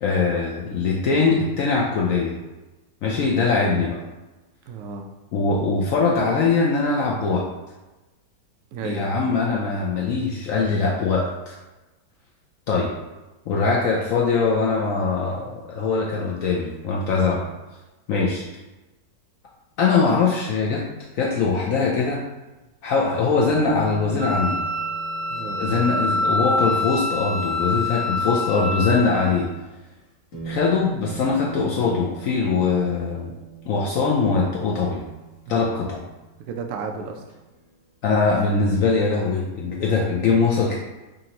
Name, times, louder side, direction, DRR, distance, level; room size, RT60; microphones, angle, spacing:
voice 1, 0.0-2.4 3.0-4.0 5.3-7.5 8.8-11.6 12.7-12.9 13.5-17.4 18.1-18.4 19.8-20.8 21.1-22.2 22.8-24.6 25.6-29.5 30.4-33.3 33.7-35.0 35.5-36.0 38.0-40.8, left 4 dB, 80° left, -2 dB, 0.7 m, -22 dB
voice 2, 4.7-5.1 8.7-9.1 25.3-25.6 35.5-35.7 36.5-37.2, right 4 dB, 75° right, 4 dB, 0.7 m, -32 dB
sound 1, 22.6-22.7 23.5-28.5 29.8-29.9 30.3-37.7 38.7-38.8, right 7 dB, 50° left, 1.5 m, -41 dB
Wind instrument woodwind instrument, 24.2-29.3, left 2 dB, 35° right, 1.4 m, -25 dB
5.2 x 2.6 x 2.8 m, 1.1 s
omnidirectional pair, 1.9 m